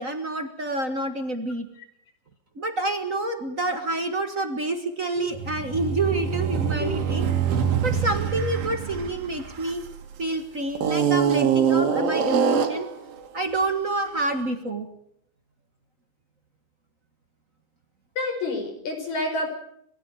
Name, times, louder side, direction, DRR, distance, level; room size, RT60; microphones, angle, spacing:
voice 1, 0.0-1.7 2.5-7.3 7.8-9.8 10.2-12.9 13.3-14.9, right 2 dB, 40° right, 6 dB, 1.2 m, -28 dB
sound 1, 5.3-10.1 10.8-12.9, right 7 dB, 80° right, 4.0 m, -24 dB
voice 2, 18.2-19.5, left 2 dB, 55° left, 5 dB, 6.6 m, -28 dB
27.5 x 21.0 x 4.9 m, 0.70 s
omnidirectional pair, 4.1 m